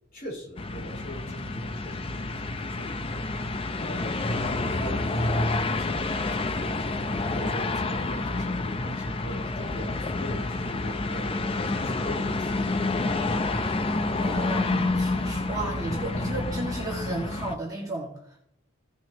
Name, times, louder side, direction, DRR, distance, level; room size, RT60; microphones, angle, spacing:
voice 1, 0.1-5.5 5.8-12.9, equal, 40° left, -4 dB, 4.4 m, -40 dB
sound 1, 0.6-17.5, left 2 dB, 25° left, 0.5 m, -28 dB
voice 2, 14.2-18.4, right 2 dB, 15° right, -3 dB, 1.9 m, -33 dB
16.0 x 6.0 x 3.0 m, 0.72 s
head